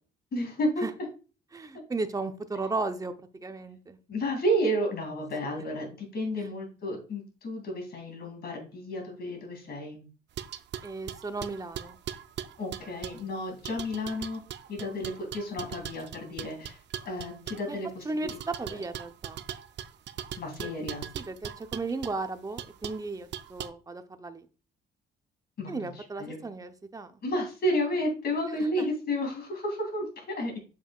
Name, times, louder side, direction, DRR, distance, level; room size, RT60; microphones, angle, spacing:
voice 1, 0.3-0.8 4.1-10.1 12.6-14.4 14.7-16.8 17.0-18.8 20.4-21.1 25.6-26.4 27.2-30.6, equal, 55° left, 2 dB, 2.7 m, -32 dB
voice 2, 1.5-4.0 6.4-6.5 10.8-12.0 17.7-17.8 18.0-18.3 18.6-19.4 20.6-20.7 21.1-24.5 25.7-27.1, right 3 dB, 15° right, 8 dB, 0.7 m, -35 dB
sound 1, 10.4-13.3 13.6-17.7 18.3-22.1 22.6-23.0 23.3-23.7, right 10 dB, 65° right, 0.5 m, -40 dB
7.1 x 5.6 x 2.4 m, 0.35 s
cardioid pair, 90°, 20 cm